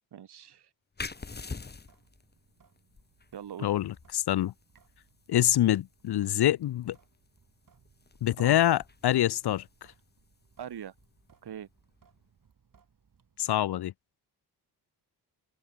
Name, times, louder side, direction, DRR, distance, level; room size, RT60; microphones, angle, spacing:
voice 1, 0.1-0.7 3.3-3.7 8.4-8.6 10.6-10.9 11.4-11.7, right 9 dB, 70° right, 1.6 m, -41 dB
sound 1, 1.0-12.2, left 4 dB, 25° left, 1.2 m, -48 dB
Sink (filling or washing) / Drip, 1.1-13.6, right 6 dB, 55° right, 5.1 m, -66 dB
voice 2, 3.6-4.5 5.3-7.0 8.2-9.6 13.4-13.9, left 13 dB, 70° left, 0.6 m, -25 dB
open air
wide cardioid pair, 125°, 41 cm